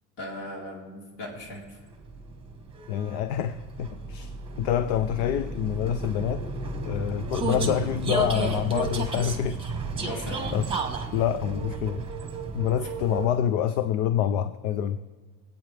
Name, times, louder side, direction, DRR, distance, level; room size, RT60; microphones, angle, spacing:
voice 1, 0.2-1.8 9.9-10.5 12.8-12.9, left 1 dB, 55° left, -1 dB, 4.0 m, -38 dB
Vehicle, 1.7-13.5, right 4 dB, 10° right, 1.2 m, -33 dB
voice 2, 2.9-6.5 6.8-9.6 10.1-10.2 10.5-10.7 11.1-12.1 12.5-15.0, left 10 dB, 70° left, 13 dB, 0.7 m, -27 dB
25.0 x 8.8 x 3.4 m, 1.5 s
supercardioid pair, 140°, 45 cm